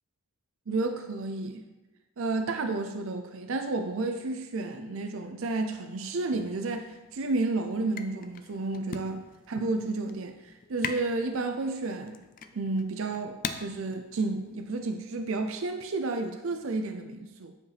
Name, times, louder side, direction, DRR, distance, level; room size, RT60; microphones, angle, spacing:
voice 1, 0.7-1.6 2.2-12.2 12.5-17.5, right 3 dB, 65° right, 6 dB, 0.5 m, -31 dB
sound 1, 6.3-15.1, left 6 dB, 40° left, 0.4 m, -42 dB
9.3 x 5.1 x 3.4 m, 1.1 s
head